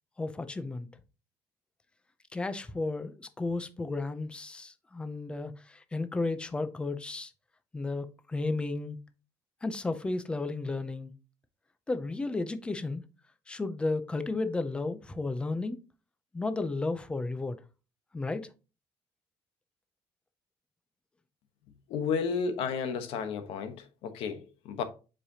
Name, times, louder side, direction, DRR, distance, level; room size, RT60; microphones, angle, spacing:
voice 1, 0.2-0.9 2.3-7.3 7.7-9.0 9.6-11.1 11.9-13.0 13.5-15.8 16.3-17.6 18.1-18.5, left 3 dB, 10° left, 0.5 m, -33 dB
voice 2, 21.9-24.8, left 6 dB, 70° left, 1.1 m, -32 dB
7.4 x 4.9 x 2.8 m
cardioid pair, 175°, 10 cm